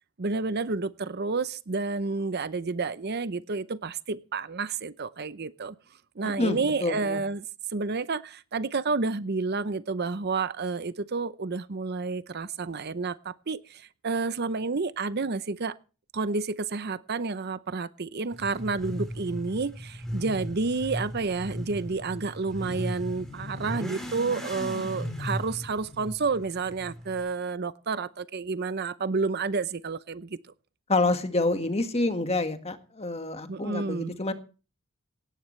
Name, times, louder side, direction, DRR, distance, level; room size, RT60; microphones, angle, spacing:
voice 1, 0.2-5.7 6.2-7.5 7.7-15.8 16.1-30.4 33.5-34.1, right 4 dB, 45° right, 15 dB, 0.7 m, -30 dB
voice 2, 6.2-7.2 30.9-34.3, left 2 dB, 30° left, 8 dB, 1.7 m, -27 dB
Motorcycle / Accelerating revving vroom, 18.3-27.2, equal, ahead, 4.4 m, -37 dB
18.0 x 16.0 x 3.2 m, 0.35 s
head